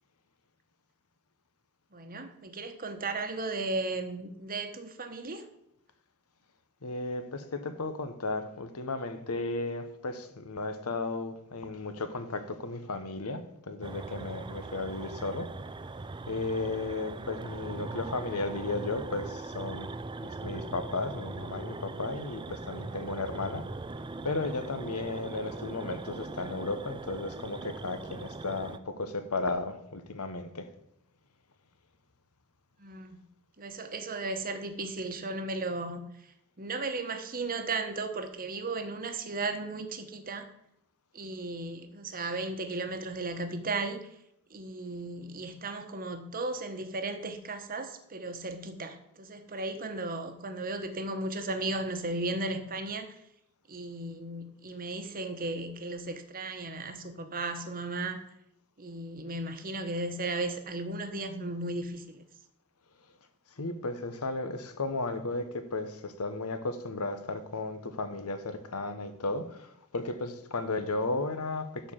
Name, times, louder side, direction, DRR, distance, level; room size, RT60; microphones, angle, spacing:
voice 1, 1.9-5.5 32.8-33.2 33.6-40.5 41.1-44.0 44.5-53.2 53.7-58.2 58.8-62.2, right 2 dB, 40° right, 7 dB, 1.1 m, -35 dB
voice 2, 6.8-15.5 16.3-19.9 20.2-23.6 24.2-30.7 63.6-71.9, left 3 dB, 80° left, 9 dB, 1.1 m, -34 dB
sound 1, 13.8-28.8, right 3 dB, 20° right, 0.4 m, -40 dB
11.5 x 4.5 x 7.4 m, 0.79 s
head